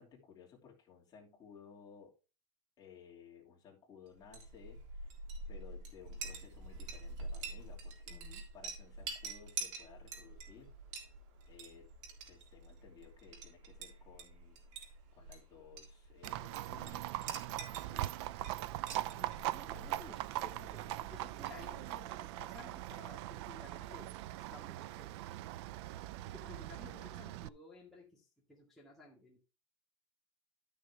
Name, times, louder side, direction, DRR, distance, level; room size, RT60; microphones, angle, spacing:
voice 1, 0.0-2.1 2.8-5.2 5.5-8.3 8.5-10.7 11.5-11.9 12.3-14.6 15.2-18.3 26.8-27.0, left 7 dB, 25° left, -2 dB, 2.8 m, -58 dB
Chink clink, 4.2-22.0, right 3 dB, 80° right, 3.4 m, -47 dB
voice 2, 8.1-8.4 18.9-20.8 21.1-25.2 26.3-29.4, left 2 dB, ahead, -6 dB, 2.1 m, -56 dB
Livestock farm animals working animals, 16.2-27.5, right 15 dB, 60° right, 0.4 m, -41 dB
12.0 x 6.4 x 3.5 m, 0.32 s
supercardioid pair, 160°, 15 cm